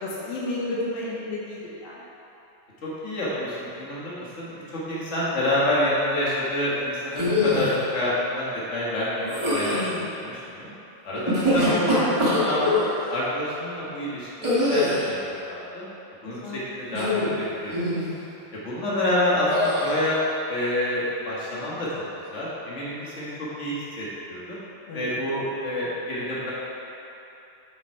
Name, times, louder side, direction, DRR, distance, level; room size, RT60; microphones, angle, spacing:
voice 1, 0.0-2.0 9.7-10.1 16.3-16.6 24.9-25.2, left 2 dB, 85° left, -6 dB, 3.0 m, -32 dB
voice 2, 2.8-10.7 11.0-12.8 13.1-15.2 15.5-15.8 16.2-18.0 18.5-20.2 20.5-21.9 22.3-23.3 23.6-24.6 24.9-26.5, left 1 dB, 60° left, -8 dB, 0.7 m, -28 dB
sound 1, 7.1-7.8 9.3-9.9 11.1-12.9 14.4-15.1 16.9-17.4 17.7-18.1 19.5-19.9, left 1 dB, 25° right, 0.6 m, -23 dB
8.0 x 7.4 x 4.7 m, 2.9 s
omnidirectional pair, 4.0 m